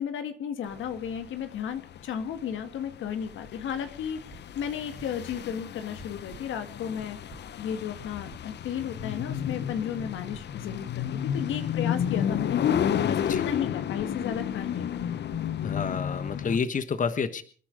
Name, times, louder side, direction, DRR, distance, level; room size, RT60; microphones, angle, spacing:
voice 1, 0.0-7.2 7.6-12.6 13.0-14.9, left 8 dB, 80° left, 9 dB, 1.8 m, -34 dB
sound 1, 0.7-16.6, left 9 dB, 60° left, 0.8 m, -31 dB
sound 2, 4.3-4.4 5.0-5.4 6.0-6.4 7.0-7.4 8.0-8.4 9.0-9.4 10.0-10.4 11.0-11.4 12.0-12.4 13.0-13.4 14.0-14.4 15.0-15.4, right 8 dB, 75° right, 4.4 m, -48 dB
voice 2, 15.6-17.4, left 5 dB, 40° left, 12 dB, 1.2 m, -29 dB
26.5 x 10.0 x 5.1 m, 0.43 s
cardioid pair, 90°, 20 cm